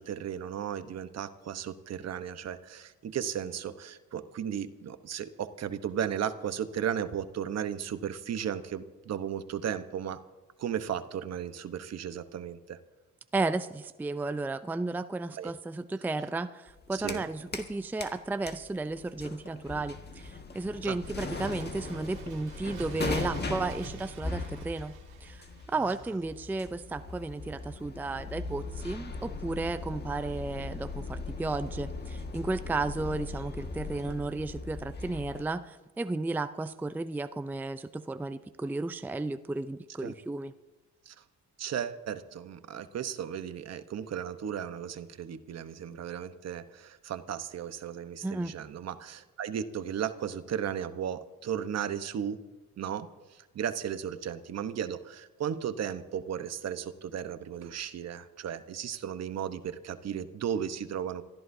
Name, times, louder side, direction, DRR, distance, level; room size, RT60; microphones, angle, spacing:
voice 1, 0.0-10.2 10.6-12.8 15.4-15.5 16.9-17.3 20.8-21.0 40.0-40.1 41.1-41.2 41.6-52.4 52.8-53.1 53.5-61.2, right 9 dB, 60° right, 11 dB, 1.0 m, -35 dB
voice 2, 13.3-40.5 48.2-48.5, right 3 dB, 5° right, 11 dB, 0.4 m, -34 dB
sound 1, 16.7-17.7 18.0-35.5, left 3 dB, 35° left, 1.7 m, -39 dB
Bird, 20.9-26.4 26.7-26.8, right 7 dB, 85° right, 2.3 m, -49 dB
27.0 x 14.0 x 2.7 m, 1.2 s
cardioid pair, 90°, 30 cm